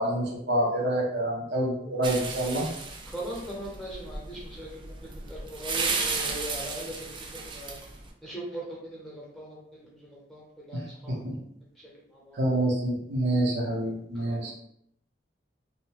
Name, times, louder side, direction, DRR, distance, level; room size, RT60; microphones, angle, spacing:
voice 1, 0.0-2.6 10.7-10.8 11.1-11.3 12.4-14.5, right 1 dB, 70° right, -3 dB, 0.8 m, -27 dB
sound 1, 2.0-8.1, right 4 dB, 30° right, 0.3 m, -34 dB
voice 2, 3.0-7.1 7.3-7.8 8.2-11.1 12.1-12.4 14.3-14.5, right 1 dB, ahead, -7 dB, 0.9 m, -40 dB
2.7 x 2.1 x 3.1 m, 0.73 s
head